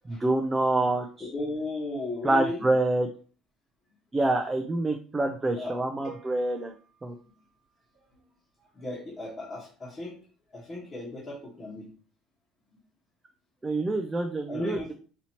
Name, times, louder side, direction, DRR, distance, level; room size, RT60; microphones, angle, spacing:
voice 1, 0.1-1.3 2.2-3.1 4.1-6.7 7.0-7.2 13.6-14.9, right 2 dB, 15° right, 3 dB, 0.4 m, -26 dB
voice 2, 1.2-2.7 5.5-5.8 8.6-10.2 10.5-11.9 12.7-12.8 14.5-14.9, left 2 dB, 30° left, -6 dB, 1.2 m, -35 dB
sound 1, 6.0-8.1, right 7 dB, 55° right, 0.9 m, -52 dB
4.3 x 2.7 x 2.9 m, 0.40 s
cardioid pair, 125°, 0 cm